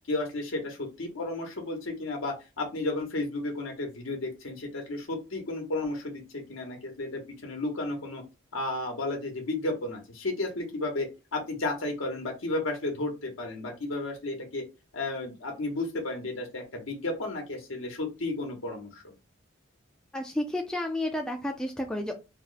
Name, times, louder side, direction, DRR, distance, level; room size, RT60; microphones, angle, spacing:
voice 1, 0.1-8.2 8.5-14.6 14.9-19.1, left 2 dB, 80° left, 1 dB, 0.9 m, -33 dB
voice 2, 20.1-22.1, left 1 dB, 5° left, 2 dB, 0.3 m, -31 dB
2.8 x 2.1 x 3.8 m, 0.28 s
head